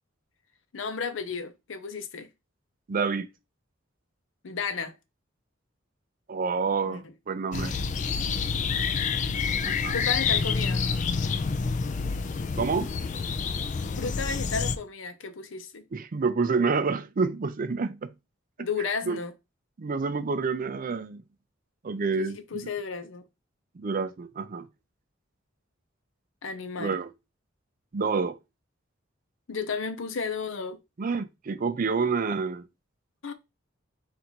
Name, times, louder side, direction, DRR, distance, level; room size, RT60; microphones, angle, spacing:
voice 1, 0.7-2.3 4.4-4.9 6.8-7.0 9.9-10.8 14.0-15.8 18.6-19.3 22.1-23.2 26.4-27.0 29.5-30.8 33.2-33.3, left 5 dB, 75° left, 0.7 m, -33 dB
voice 2, 2.9-3.3 6.3-7.8 9.6-10.0 12.6-12.9 15.9-18.1 19.1-19.2 19.8-21.2 21.8-22.6 23.8-24.7 26.8-27.1 27.9-28.4 31.0-32.7, right 4 dB, 45° right, 0.5 m, -28 dB
sound 1, 7.5-14.8, left 5 dB, 40° left, 0.4 m, -28 dB
4.0 x 2.5 x 4.4 m
head